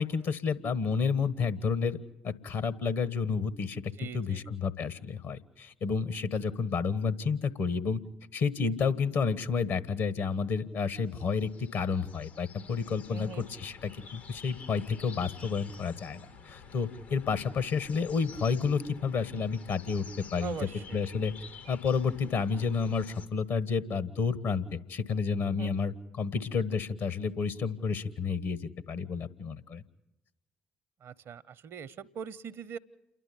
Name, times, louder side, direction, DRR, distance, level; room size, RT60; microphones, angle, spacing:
voice 1, 0.0-2.0 2.2-8.0 8.3-21.3 21.7-29.8, left 5 dB, 65° left, 15 dB, 1.3 m, -30 dB
voice 2, 4.0-4.5 13.1-13.5 20.4-21.0 25.5-25.8 31.0-32.8, right 7 dB, 60° right, 16 dB, 0.8 m, -41 dB
sound 1, 11.1-23.3, left 5 dB, 80° left, 1.6 m, -50 dB
29.0 x 11.5 x 8.5 m, 0.92 s
figure-of-eight pair, 40°, 5 cm